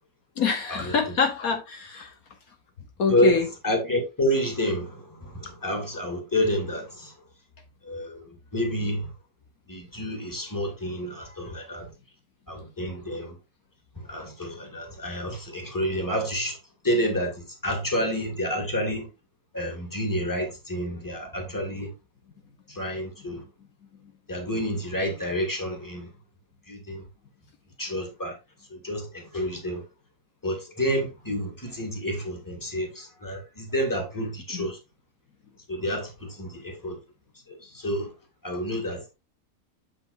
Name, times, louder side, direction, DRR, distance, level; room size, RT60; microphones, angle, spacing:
voice 1, 0.4-2.1 3.0-3.5 11.2-11.3 34.5-34.7, left 5 dB, 70° left, 1.5 m, -26 dB
voice 2, 3.6-7.1 7.8-8.2 8.5-9.1 9.7-11.9 12.5-13.3 14.1-16.6 16.8-19.1 19.5-21.9 22.7-23.4 24.3-26.1 26.7-27.0 27.8-28.4 28.7-29.8 30.4-34.8 35.7-37.0 37.7-38.1 38.4-39.1, equal, 10° left, 2.1 m, -29 dB
7.8 x 7.8 x 2.6 m
omnidirectional pair, 1.6 m